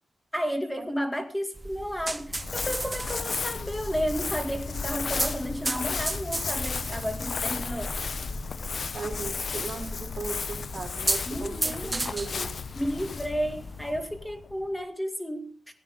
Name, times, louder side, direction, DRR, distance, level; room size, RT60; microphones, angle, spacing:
voice 1, 0.3-8.1 11.2-12.0 12.8-15.5, equal, 5° left, 2.3 m, -32 dB
sound 1, 1.6-14.0, right 2 dB, 20° right, 0.9 m, -36 dB
Crumpling crinkling, 2.3-14.7, left 5 dB, 60° left, 0.8 m, -34 dB
voice 2, 8.9-12.5, right 4 dB, 60° right, 4.2 m, -37 dB
17.0 x 16.0 x 3.8 m
cardioid pair, 75°, 0 cm